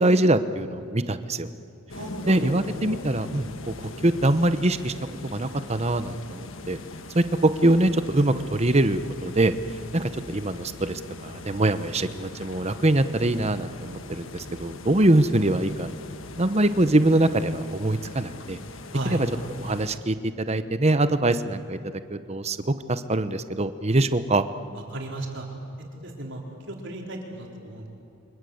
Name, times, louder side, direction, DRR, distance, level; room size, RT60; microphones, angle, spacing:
voice 1, 0.0-1.5 2.3-4.9 5.3-6.8 7.1-9.5 9.9-15.9 16.4-18.6 19.1-19.3 19.6-21.8 22.1-24.4, right 1 dB, 30° right, 11 dB, 0.9 m, -23 dB
sound 1, 1.9-20.0, left 3 dB, 65° left, 1.5 m, -41 dB
voice 2, 1.9-2.5 18.9-19.2 24.9-25.5 26.0-26.4 26.7-27.9, right 1 dB, 60° right, 0 dB, 4.2 m, -34 dB
29.0 x 25.5 x 8.0 m, 2.7 s
head